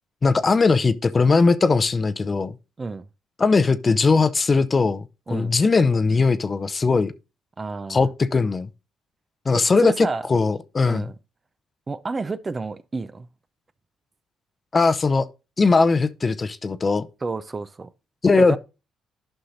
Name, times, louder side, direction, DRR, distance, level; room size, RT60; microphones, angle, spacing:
voice 1, 0.2-2.5 3.4-7.1 7.9-8.7 9.5-11.0 14.7-15.3 15.6-17.1 18.2-18.6, left 4 dB, 35° left, 0.6 m, -19 dB
voice 2, 7.6-8.1 9.5-10.3 10.8-11.1 11.9-13.3 17.2-17.9 18.4-18.6, right 3 dB, 30° right, 0.6 m, -30 dB
11.5 x 5.6 x 2.6 m
supercardioid pair, 60°, 0 cm